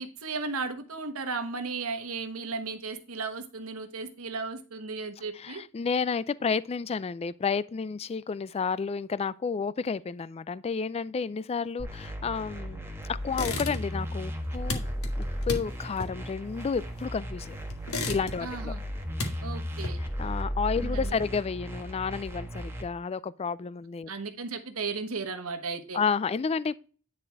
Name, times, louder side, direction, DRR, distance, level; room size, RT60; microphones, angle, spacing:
voice 1, 0.0-5.6 18.4-18.8 19.4-20.0 20.8-21.1 24.1-26.0, right 4 dB, 85° right, 1.2 m, -35 dB
voice 2, 5.4-14.8 15.2-17.6 18.1-18.7 20.0-24.1 25.9-26.8, left 5 dB, 30° left, 0.3 m, -31 dB
sound 1, 11.8-22.8, equal, 10° right, 1.5 m, -35 dB
sound 2, 13.3-14.1 14.3-17.3 17.7-18.6 18.9-20.3, left 2 dB, 90° left, 1.5 m, -35 dB
9.9 x 4.3 x 4.6 m
head